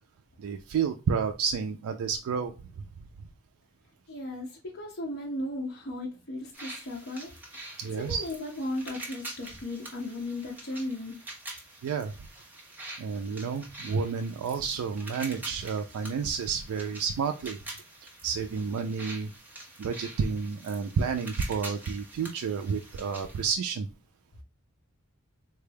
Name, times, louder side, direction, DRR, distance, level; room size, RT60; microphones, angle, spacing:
voice 1, 0.4-2.5 7.8-8.3 11.8-12.1 13.0-17.6 18.2-19.3 19.8-23.9, right 6 dB, 80° right, 6 dB, 0.3 m, -30 dB
voice 2, 4.1-7.3 8.0-11.2, left 1 dB, 50° left, -2 dB, 0.7 m, -36 dB
sound 1, 6.5-23.5, right 2 dB, 10° right, 0.7 m, -45 dB
3.9 x 2.2 x 3.2 m, 0.32 s
head